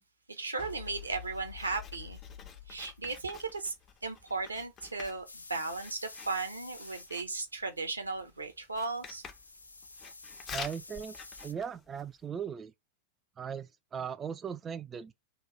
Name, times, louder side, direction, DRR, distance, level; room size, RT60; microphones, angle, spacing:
voice 1, 0.3-2.2 2.7-3.7 4.0-5.2 5.5-9.2, right 3 dB, 80° right, 0.7 m, -36 dB
sound 1, 0.6-3.8, left 9 dB, 65° left, 0.8 m, -47 dB
Writing, 0.6-12.2, left 6 dB, 25° left, 0.5 m, -50 dB
sound 2, 5.3-7.1 8.8-11.5, left 3 dB, 80° left, 0.4 m, -50 dB
voice 2, 10.5-11.2 11.4-12.7 13.4-15.1, right 7 dB, 20° right, 0.3 m, -38 dB
3.0 x 2.3 x 4.0 m
figure-of-eight pair, 90°, 0 cm